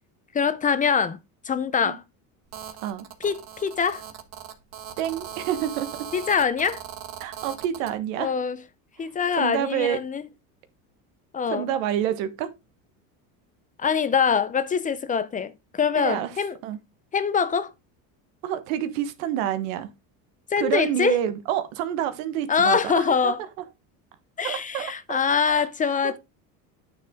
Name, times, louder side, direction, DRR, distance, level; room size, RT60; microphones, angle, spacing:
voice 1, 0.3-1.2 1.4-2.0 3.2-4.0 6.1-6.8 8.2-8.6 9.0-10.2 11.3-11.7 13.8-16.6 17.1-17.7 20.5-21.2 22.5-23.4 24.4-26.2, left 6 dB, 20° left, 0.6 m, -24 dB
Telephone, 2.5-7.9, right 8 dB, 45° right, 1.5 m, -39 dB
voice 2, 5.0-6.1 7.2-8.3 9.0-10.0 11.5-12.5 15.9-16.3 16.6-16.8 18.4-19.9 20.6-23.3 24.4-25.2 25.4-25.7, right 11 dB, 85° right, 1.4 m, -28 dB
9.4 x 6.7 x 3.7 m
cardioid pair, 135°, 38 cm